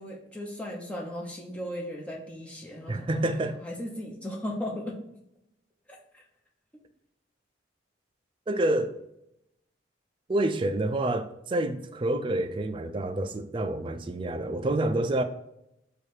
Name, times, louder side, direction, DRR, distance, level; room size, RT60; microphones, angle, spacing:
voice 1, 0.0-5.0 5.9-6.0, left 1 dB, 5° left, 0.7 m, -37 dB
voice 2, 2.9-3.6 8.5-9.0 10.3-15.2, right 1 dB, 25° right, 0.3 m, -28 dB
4.8 x 2.4 x 4.4 m
head